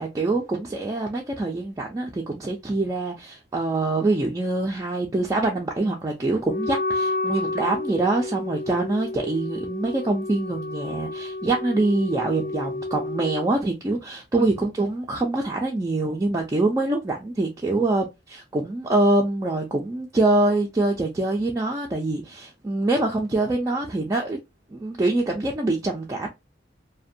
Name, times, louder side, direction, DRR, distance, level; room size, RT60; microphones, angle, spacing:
voice 1, 0.0-24.4 24.7-26.3, right 2 dB, 20° right, 0.3 m, -24 dB
Wind instrument woodwind instrument, 6.4-13.5, left 2 dB, 40° left, 0.5 m, -30 dB
2.5 x 2.1 x 2.5 m
head